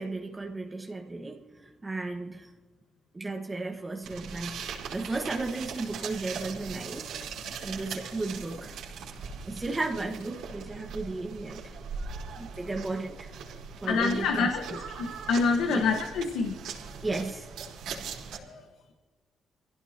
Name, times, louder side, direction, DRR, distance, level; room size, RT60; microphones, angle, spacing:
voice 1, 0.0-2.5 3.1-7.1 7.6-8.8 9.5-11.8 12.4-13.3 13.8-14.8 15.7-15.9 17.0-17.5, right 3 dB, 20° right, 1.6 m, -34 dB
sound 1, 4.0-18.4, right 5 dB, 85° right, 4.8 m, -40 dB
voice 2, 13.9-16.5 18.4-18.6, left 4 dB, 90° left, 1.5 m, -27 dB
25.5 x 16.5 x 3.0 m
cardioid pair, 90°, 0 cm